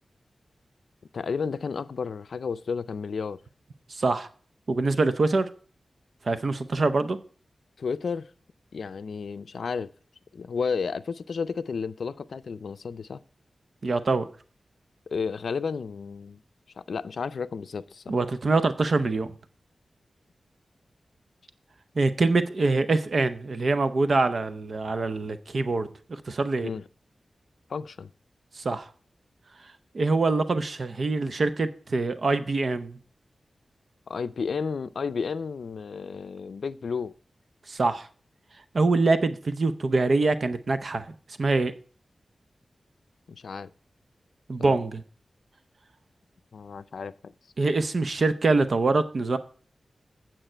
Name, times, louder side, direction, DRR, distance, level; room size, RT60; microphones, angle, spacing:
voice 1, 1.1-3.4 7.8-8.3 8.7-9.9 10.3-13.2 15.1-16.4 16.8-18.2 26.6-26.8 27.7-28.1 34.1-37.1 43.3-43.7 44.6-44.8 46.5-47.3, left 5 dB, 80° left, 0.5 m, -32 dB
voice 2, 3.9-4.3 4.7-5.5 6.2-7.2 13.8-14.3 18.1-19.3 22.0-26.7 28.6-28.9 29.9-33.0 37.7-38.1 38.7-41.1 41.4-41.7 44.5-45.0 47.6-49.4, right 3 dB, 55° right, 0.7 m, -24 dB
9.1 x 7.6 x 4.4 m
wide cardioid pair, 110°, 0 cm